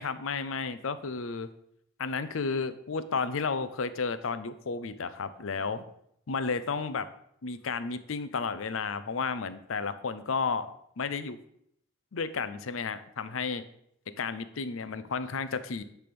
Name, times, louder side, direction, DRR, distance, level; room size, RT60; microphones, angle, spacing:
voice 1, 0.0-1.5 2.0-5.9 6.3-7.1 7.4-10.7 11.0-11.4 12.1-13.6 14.2-15.8, left 5 dB, 80° left, 12 dB, 0.6 m, -32 dB
10.0 x 3.5 x 6.0 m, 0.72 s
head